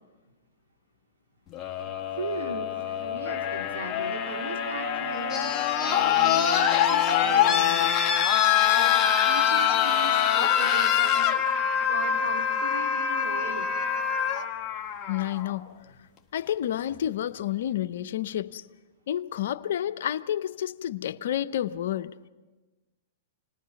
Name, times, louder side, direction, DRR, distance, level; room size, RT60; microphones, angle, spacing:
sound 1, 1.5-15.5 16.7-16.8, left 9 dB, 30° left, 1.5 m, -24 dB
voice 1, 1.8-8.0 8.6-11.4 11.8-13.7 14.2-14.6 14.9-15.0, right 4 dB, 80° right, 2.7 m, -39 dB
voice 2, 15.1-15.7 16.3-18.6 19.1-22.2, left 11 dB, 70° left, 0.7 m, -30 dB
28.0 x 20.0 x 5.8 m
hypercardioid pair, 125°, 0 cm